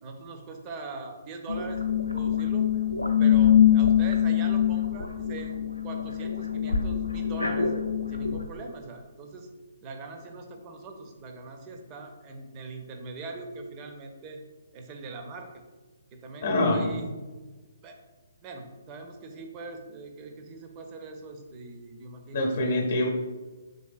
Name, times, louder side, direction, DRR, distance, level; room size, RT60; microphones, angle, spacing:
voice 1, 0.0-1.8 2.1-2.7 3.2-5.6 5.8-7.7 8.1-9.5 9.8-14.4 14.7-15.5 16.1-17.1 17.8-18.0 18.4-22.8, right 3 dB, 25° right, 3 dB, 0.5 m, -41 dB
sound 1, 1.5-8.4, left 9 dB, 85° left, 0.4 m, -24 dB
voice 2, 16.4-17.0 22.3-23.1, left 1 dB, 50° left, 1 dB, 0.7 m, -25 dB
4.0 x 3.2 x 2.4 m, 1.2 s
figure-of-eight pair, 135°, 0 cm